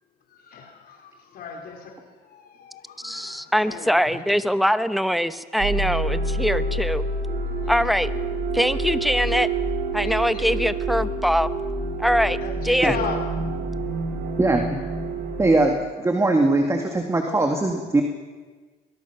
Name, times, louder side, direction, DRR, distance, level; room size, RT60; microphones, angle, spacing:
voice 1, 0.3-4.4 7.4-7.9 10.0-10.5 12.4-13.2, left 5 dB, 65° left, 1 dB, 4.5 m, -37 dB
voice 2, 3.0-7.0 7.7-8.1 8.5-9.5 9.9-11.5 12.0-12.4 12.6-13.0, equal, ahead, 12 dB, 0.9 m, -22 dB
sound 1, 5.6-15.7, right 2 dB, 90° right, 8.0 m, -27 dB
voice 3, 14.4-14.8 15.4-18.0, right 2 dB, 15° right, 4 dB, 2.0 m, -21 dB
22.0 x 21.5 x 6.0 m, 1.4 s
cardioid pair, 110°, 17 cm